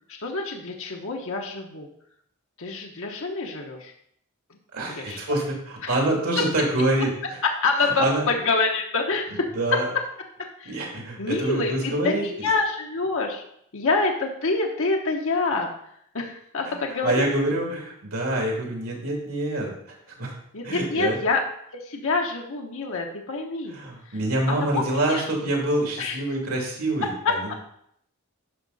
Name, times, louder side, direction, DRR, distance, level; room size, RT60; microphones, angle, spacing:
voice 1, 0.1-1.9 2.6-3.9 4.5-4.6 5.0-5.4 5.8-5.9 7.6-9.5 10.4-10.8 11.2-13.4 13.7-15.7 16.1-17.3 20.5-21.4 21.8-23.8 24.5-25.2 26.0-26.2 27.2-27.5, left 3 dB, 65° left, 1 dB, 1.1 m, -26 dB
voice 2, 4.7-7.4 7.8-8.2 9.3-9.9 10.6-12.3 16.7-16.8 17.0-19.7 20.2-20.3 20.6-21.2 23.7-27.5, right 1 dB, 80° right, -1 dB, 2.9 m, -26 dB
11.5 x 5.5 x 4.1 m, 0.71 s
head